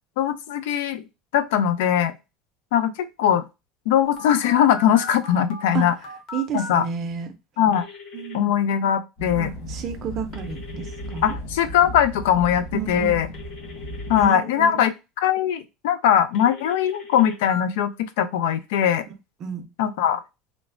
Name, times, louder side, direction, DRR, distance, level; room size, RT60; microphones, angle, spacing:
voice 1, 0.2-1.1 1.3-2.1 2.7-2.9 3.2-3.4 3.9-5.9 6.5-6.8 7.6-7.8 8.3-9.5 11.2-13.3 14.1-14.9 15.2-19.0 19.8-20.2, left 9 dB, 80° left, 0.4 m, -20 dB
Telephone, 4.2-6.7 7.7-8.4 10.3-11.3 13.3-14.3 16.3-17.6, left 4 dB, 45° left, 0.7 m, -38 dB
voice 2, 6.3-7.3 8.1-8.5 9.4-11.3 12.7-13.2 14.2-14.8 19.4-19.7, right 7 dB, 30° right, 0.5 m, -31 dB
sound 1, 9.2-14.3, equal, 65° left, 1.5 m, -35 dB
3.1 x 2.0 x 2.5 m
cardioid pair, 175°, 0 cm